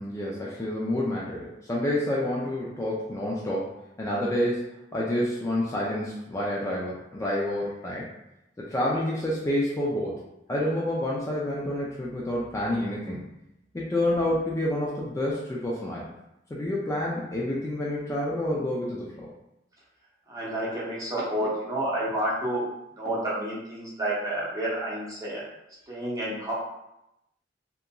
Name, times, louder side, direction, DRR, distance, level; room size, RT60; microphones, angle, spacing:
voice 1, 0.0-8.1 8.6-10.2 10.5-13.2 13.7-16.0 16.5-19.3, left 1 dB, 15° left, -5 dB, 0.3 m, -28 dB
voice 2, 20.3-22.6 23.0-25.4 25.9-26.5, right 1 dB, 20° right, -7 dB, 0.7 m, -30 dB
2.8 x 2.4 x 2.2 m, 0.88 s
head